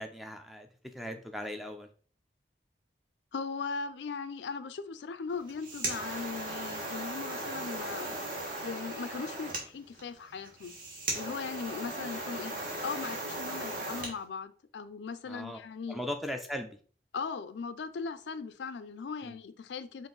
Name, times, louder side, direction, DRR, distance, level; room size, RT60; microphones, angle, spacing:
voice 1, 0.0-1.9 15.3-15.6 15.9-16.8 19.2-19.4, equal, ahead, 0.4 m, -39 dB
voice 2, 3.3-8.2 8.6-10.7 11.1-12.5 12.8-16.1 17.1-20.1, left 5 dB, 75° left, 0.4 m, -39 dB
sound 1, 5.3-14.1, right 2 dB, 50° right, 1.5 m, -37 dB
5.3 x 2.6 x 3.9 m
head